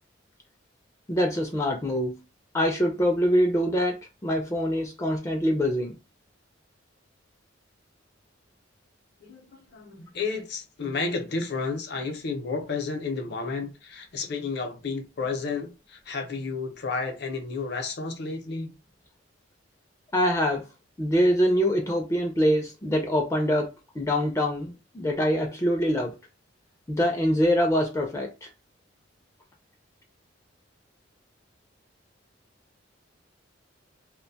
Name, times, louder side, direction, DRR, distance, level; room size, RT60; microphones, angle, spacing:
voice 1, 1.1-2.2 2.5-4.0 4.2-6.0 20.1-20.6 21.0-23.7 24.0-26.1 26.9-28.5, equal, 15° left, 0.3 m, -24 dB
voice 2, 9.2-18.7, left 4 dB, 60° left, 0.6 m, -32 dB
2.4 x 2.2 x 2.7 m
head